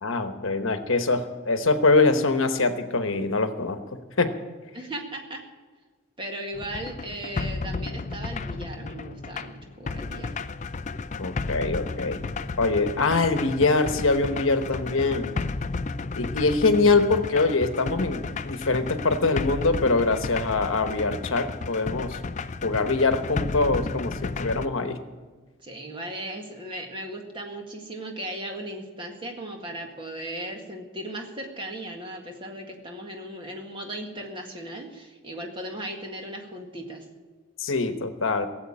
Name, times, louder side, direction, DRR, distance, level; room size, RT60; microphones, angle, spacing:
voice 1, 0.0-3.8 4.2-4.4 11.2-12.3 12.6-15.4 16.1-22.2 22.6-25.0 37.6-38.5, left 3 dB, 70° left, 8 dB, 1.1 m, -23 dB
voice 2, 4.7-5.4 6.2-10.4 25.6-37.0, right 1 dB, 25° right, 2 dB, 1.8 m, -37 dB
sound 1, 6.5-24.7, left 3 dB, 35° left, 0.4 m, -33 dB
17.0 x 7.9 x 8.8 m, 1.4 s
head